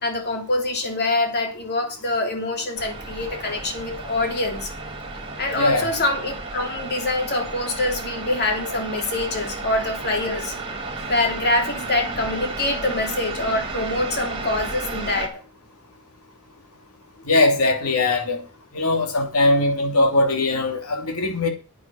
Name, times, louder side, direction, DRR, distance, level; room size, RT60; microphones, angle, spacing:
voice 1, 0.0-4.7 5.4-10.5 11.1-15.4, left 2 dB, 50° left, 3.0 m, -25 dB
sound 1, 2.7-15.3, right 3 dB, 25° right, 2.9 m, -33 dB
voice 2, 5.5-5.9 17.3-18.4 18.7-21.5, left 2 dB, 85° left, 2.7 m, -20 dB
9.4 x 9.2 x 5.5 m
head